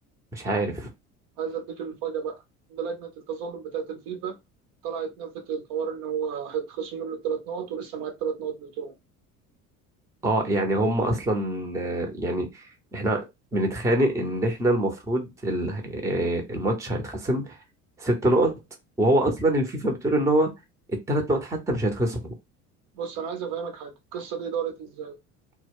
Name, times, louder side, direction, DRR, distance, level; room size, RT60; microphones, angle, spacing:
voice 1, 0.3-0.9 10.2-13.2 13.5-17.6 18.0-18.5 19.0-20.5 21.1-22.3, right 1 dB, 5° right, 0.6 m, -25 dB
voice 2, 1.4-2.4 2.7-4.4 4.8-8.9 23.0-25.2, right 7 dB, 45° right, 0.6 m, -32 dB
2.2 x 2.1 x 3.5 m
figure-of-eight pair, 65°, 45 cm